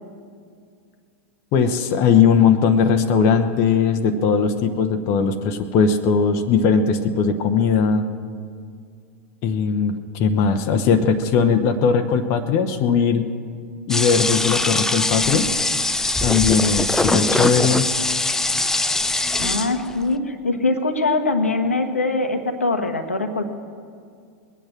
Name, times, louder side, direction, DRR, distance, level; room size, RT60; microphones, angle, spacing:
voice 1, 1.5-8.0 9.4-13.3 13.9-15.5 16.2-17.9, left 6 dB, 40° left, 7 dB, 1.0 m, -19 dB
sound 1, 13.9-20.0, left 2 dB, 5° left, 0.5 m, -22 dB
voice 2, 19.4-23.5, left 3 dB, 80° left, 6 dB, 1.2 m, -22 dB
21.0 x 9.0 x 7.4 m, 2.2 s
figure-of-eight pair, 90°, 7 cm